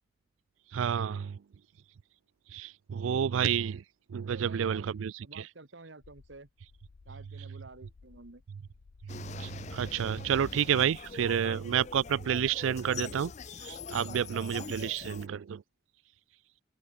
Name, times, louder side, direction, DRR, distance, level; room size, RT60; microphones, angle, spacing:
voice 1, 0.7-1.4 2.5-3.8 4.1-5.5 9.1-15.6, right 8 dB, 85° right, 0.4 m, -30 dB
voice 2, 4.2-4.9 5.2-6.5 7.0-8.4 11.2-11.6 12.7-12.9 15.1-15.4, right 2 dB, 65° right, 1.5 m, -50 dB
sound 1, 6.0-12.4, left 4 dB, 90° left, 0.6 m, -59 dB
sound 2, 9.1-15.3, left 5 dB, 35° left, 0.4 m, -43 dB
head